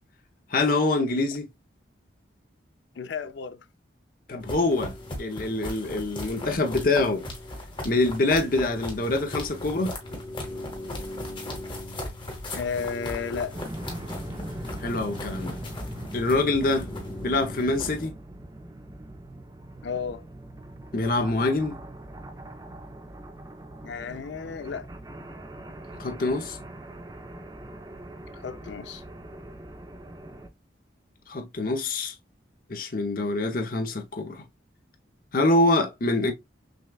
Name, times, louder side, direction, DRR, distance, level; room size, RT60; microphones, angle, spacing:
voice 1, 0.5-1.5 4.3-4.9 5.2-7.3 7.8-10.0 14.8-15.6 16.1-16.9 17.2-18.1 20.9-21.8 26.0-26.6 31.3-32.1 32.7-34.4 35.3-36.3, left 2 dB, 50° left, 0.7 m, -25 dB
voice 2, 3.0-3.7 12.5-13.6 19.8-20.2 23.8-24.9 28.3-29.0, left 6 dB, 70° left, 0.4 m, -33 dB
sound 1, 4.4-18.1, left 1 dB, 25° left, 1.1 m, -37 dB
sound 2, 13.5-30.5, right 1 dB, 20° right, 0.4 m, -42 dB
6.2 x 2.3 x 2.3 m
head